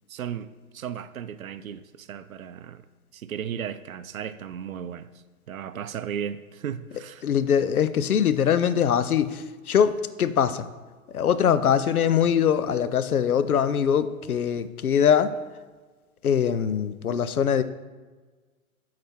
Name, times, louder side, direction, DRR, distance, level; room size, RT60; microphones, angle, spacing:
voice 1, 0.1-2.8 3.1-5.1 5.5-7.3, right 8 dB, 70° right, 0.5 m, -35 dB
voice 2, 7.2-10.7 11.1-15.3 16.2-17.6, left 8 dB, 80° left, 0.5 m, -22 dB
8.5 x 4.2 x 4.4 m
figure-of-eight pair, 110°, 43 cm